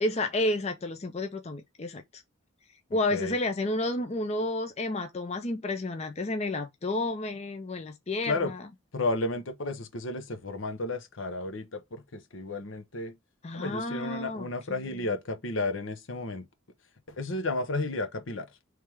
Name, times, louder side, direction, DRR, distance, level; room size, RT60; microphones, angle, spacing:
voice 1, 0.0-2.2 2.9-8.6 13.4-14.5, left 2 dB, 30° left, 0.5 m, -31 dB
voice 2, 2.9-3.4 8.3-8.5 8.9-13.2 13.5-16.5 17.1-18.5, left 2 dB, 70° left, 0.9 m, -33 dB
3.6 x 3.3 x 4.6 m
head